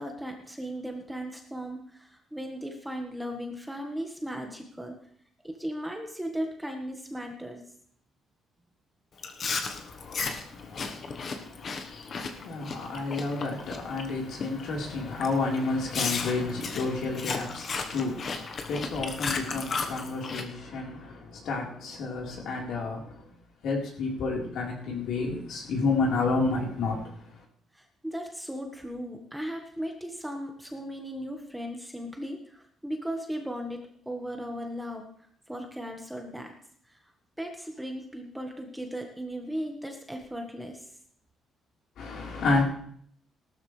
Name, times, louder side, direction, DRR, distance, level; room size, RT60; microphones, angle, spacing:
voice 1, 0.0-4.9 5.4-7.6 27.7-35.0 35.5-36.5 36.9-37.0 37.4-40.9, equal, 5° right, 1.5 m, -37 dB
Chewing mastication, 9.2-14.1 14.4-14.7 15.2-15.3 15.9-20.4, left 4 dB, 35° left, 1.2 m, -34 dB
voice 2, 9.5-23.2 23.6-27.1 42.0-42.6, left 3 dB, 65° left, 4.2 m, -31 dB
18.0 x 12.5 x 3.3 m
cardioid pair, 155°, 0 cm